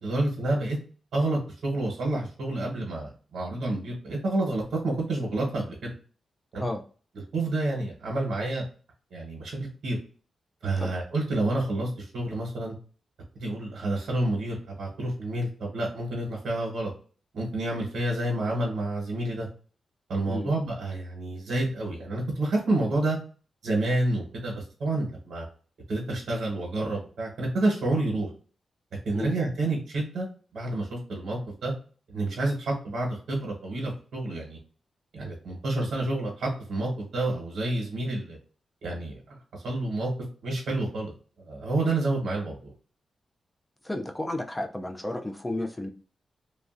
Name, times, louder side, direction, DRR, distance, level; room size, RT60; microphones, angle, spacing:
voice 1, 0.0-0.8 1.1-5.9 6.5-6.6 7.3-8.6 9.1-10.0 10.6-12.7 13.3-16.9 17.3-19.5 20.1-23.2 23.6-25.4 25.9-28.3 29.0-30.3 30.5-31.7 32.1-34.6 35.1-38.4 38.8-40.1 40.4-41.1 41.4-42.7, right 2 dB, 75° right, -1 dB, 1.0 m, -29 dB
voice 2, 43.8-45.9, left 1 dB, 10° left, 4 dB, 0.3 m, -32 dB
3.0 x 2.4 x 2.4 m, 0.39 s
wide cardioid pair, 155°, 0 cm